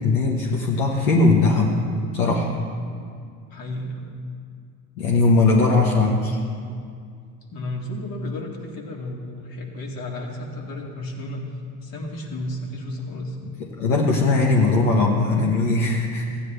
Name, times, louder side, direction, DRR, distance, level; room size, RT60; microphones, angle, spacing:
voice 1, 0.0-1.8 2.1-2.5 5.0-6.4 13.6-16.3, left 3 dB, 85° left, -2 dB, 1.2 m, -19 dB
voice 2, 3.5-4.1 5.4-5.7 7.5-11.4 11.8-13.4, left 1 dB, 60° left, 0 dB, 2.1 m, -32 dB
15.5 x 9.5 x 3.3 m, 2.2 s
hypercardioid pair, 75°, 40 cm